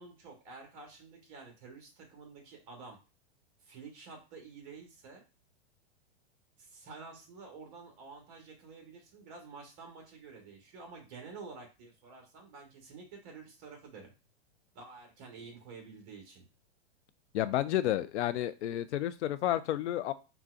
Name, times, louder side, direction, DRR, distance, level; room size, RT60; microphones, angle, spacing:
voice 1, 0.0-3.0 3.6-5.2 6.6-14.1 14.7-16.4, right 4 dB, 35° right, 2 dB, 1.1 m, -50 dB
voice 2, 17.3-20.1, left 13 dB, 85° left, 13 dB, 0.5 m, -31 dB
3.9 x 2.3 x 2.4 m, 0.30 s
supercardioid pair, 165°, 33 cm